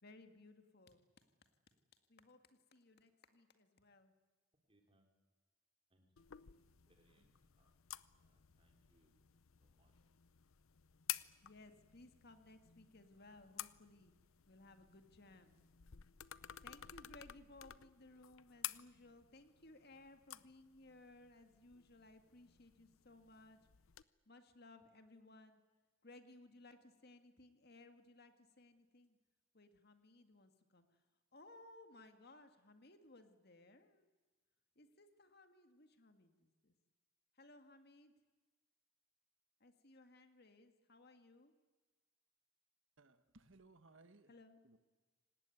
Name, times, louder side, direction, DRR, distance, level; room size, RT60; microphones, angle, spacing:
voice 1, 0.0-1.1 2.1-4.1 7.2-7.3 11.4-14.1 14.5-15.6 16.6-23.6 24.3-25.6 26.0-29.2 29.5-31.0 31.3-34.1 34.8-36.7 37.3-38.1 39.6-41.5 44.3-44.6, left 2 dB, 50° left, 2.0 m, -61 dB
voice 2, 4.7-5.1 5.9-6.5 6.9-7.7 8.2-9.2 9.6-9.9, right 1 dB, 25° right, 3.9 m, -76 dB
sound 1, 6.2-24.0, left 13 dB, 85° left, 0.7 m, -53 dB
voice 3, 43.0-44.3 44.6-44.8, right 3 dB, 70° right, 1.4 m, -64 dB
27.0 x 19.0 x 9.3 m
head